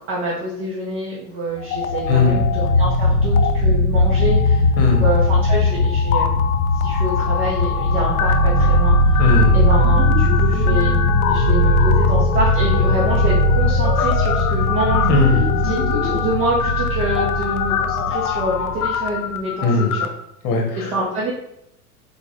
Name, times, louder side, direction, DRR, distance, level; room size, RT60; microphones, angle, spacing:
voice 1, 0.1-4.7 4.9-6.4 6.8-9.2 9.5-10.9 11.3-15.1 15.6-19.7 20.9-21.3, right 1 dB, 40° right, -4 dB, 1.1 m, -26 dB
sound 1, 1.6-3.0 3.2-3.5 4.0-20.1, left 8 dB, 70° left, 0.5 m, -25 dB
cinematic deep bass rumble, 1.7-19.1, left 1 dB, 90° right, 1.0 m, -18 dB
voice 2, 2.1-2.4 4.8-5.1 9.2-9.5 15.1-15.4 19.6-19.9 20.4-20.9, left 3 dB, 30° left, 3 dB, 1.0 m, -18 dB
4.0 x 3.6 x 3.4 m, 0.79 s
figure-of-eight pair, 85°, 45 cm